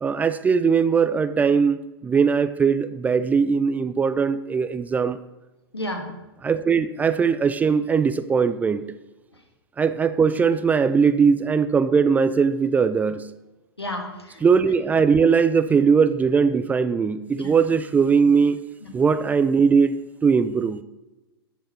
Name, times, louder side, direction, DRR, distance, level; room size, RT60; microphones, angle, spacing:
voice 1, 0.0-5.2 6.4-8.9 9.8-13.3 14.4-18.6 18.9-20.8, right 5 dB, 10° right, 0.3 m, -20 dB
voice 2, 5.7-6.1 13.8-14.4 17.3-17.5 18.8-19.0, left 1 dB, 90° left, 1.8 m, -32 dB
13.5 x 5.1 x 4.4 m
figure-of-eight pair, 100°, 13 cm